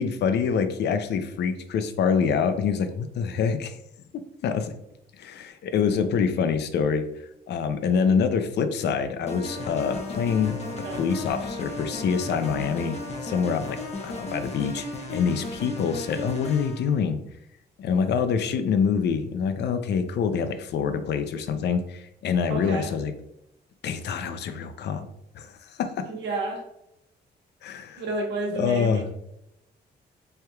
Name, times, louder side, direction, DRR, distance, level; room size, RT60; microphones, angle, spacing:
voice 1, 0.0-3.8 4.4-4.7 5.2-7.0 7.5-10.6 10.9-17.2 17.8-23.1 23.8-25.0 25.3-26.1 27.6-28.0 28.5-29.1, left 6 dB, 75° left, 9 dB, 0.5 m, -26 dB
sound 1, 9.3-16.9, left 2 dB, 35° left, 0.9 m, -35 dB
voice 2, 22.5-22.9 26.0-26.6 28.0-29.1, right 2 dB, 85° right, 1 dB, 1.1 m, -31 dB
4.3 x 3.4 x 2.3 m, 0.84 s
cardioid pair, 95°, 18 cm